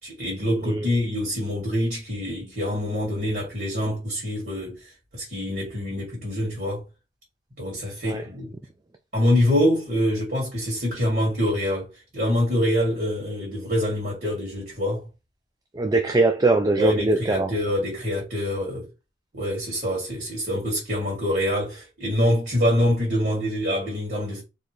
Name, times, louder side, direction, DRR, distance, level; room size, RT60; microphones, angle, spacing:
voice 1, 0.0-6.8 7.6-8.5 9.1-15.0 16.8-18.8 19.3-24.4, equal, 50° right, 2.5 m, -25 dB
voice 2, 15.7-17.5, right 2 dB, 20° right, 0.4 m, -21 dB
4.5 x 3.5 x 3.2 m
head